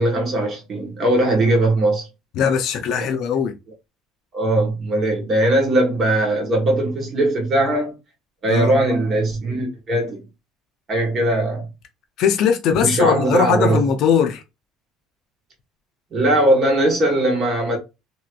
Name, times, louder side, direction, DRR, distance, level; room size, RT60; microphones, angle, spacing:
voice 1, 0.0-2.1 3.0-3.1 4.3-8.0 8.4-10.2 10.9-11.7 12.8-13.8 16.1-17.8, right 1 dB, 30° right, 1.2 m, -19 dB
voice 2, 2.3-3.5 8.5-8.8 12.2-14.4, left 7 dB, 50° left, 0.5 m, -20 dB
3.0 x 2.9 x 2.4 m
cardioid pair, 165°, 0 cm